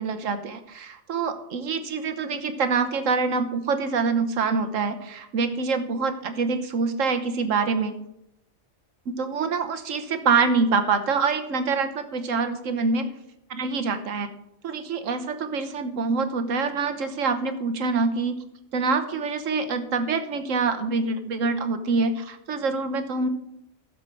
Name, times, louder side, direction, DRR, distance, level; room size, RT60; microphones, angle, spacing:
voice 1, 0.0-8.0 9.1-13.1 13.5-14.3 14.6-18.4 18.7-23.3, right 4 dB, 75° right, 9 dB, 1.3 m, -25 dB
15.0 x 6.9 x 4.6 m, 0.82 s
omnidirectional pair, 1.3 m